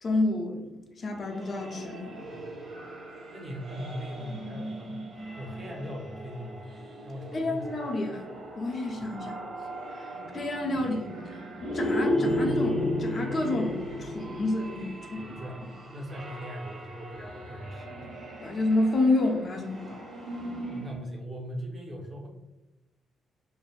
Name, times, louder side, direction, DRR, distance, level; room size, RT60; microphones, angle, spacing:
voice 1, 0.0-2.2 7.3-8.3 8.6-9.4 9.9-11.0 11.3-15.4 18.4-20.0, left 2 dB, 45° left, 2 dB, 0.5 m, -29 dB
sound 1, 1.2-21.0, equal, 55° right, 1.0 m, -35 dB
voice 2, 2.3-2.7 3.3-5.1 5.3-6.7 7.0-7.8 9.0-9.1 10.7-11.0 15.2-18.1 20.7-22.3, equal, 35° right, 0 dB, 0.6 m, -40 dB
3.2 x 2.1 x 2.3 m, 1.0 s
cardioid pair, 110°, 0 cm